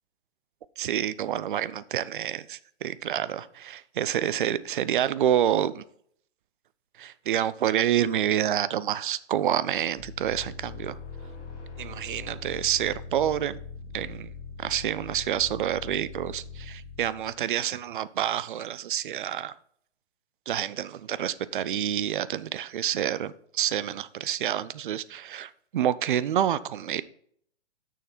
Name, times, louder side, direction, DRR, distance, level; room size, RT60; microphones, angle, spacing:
voice 1, 0.8-5.8 7.0-11.0 11.8-13.6 13.9-14.3 14.6-19.5 20.5-27.0, right 10 dB, 50° right, 17 dB, 0.5 m, -28 dB
sound 1, 9.9-17.4, left 4 dB, 35° left, 2.6 m, -41 dB
6.5 x 6.4 x 4.4 m, 0.64 s
figure-of-eight pair, 130°, 35 cm